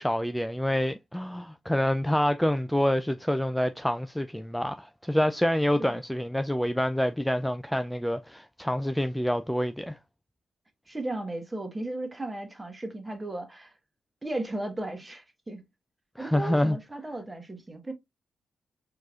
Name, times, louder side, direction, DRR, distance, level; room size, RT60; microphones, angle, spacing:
voice 1, 0.0-10.0 16.2-16.8, left 1 dB, 5° left, 0.3 m, -27 dB
voice 2, 10.9-13.7 14.2-15.6 16.2-17.9, right 2 dB, 20° right, 1.3 m, -35 dB
4.5 x 2.9 x 2.4 m
hypercardioid pair, 45°, 0 cm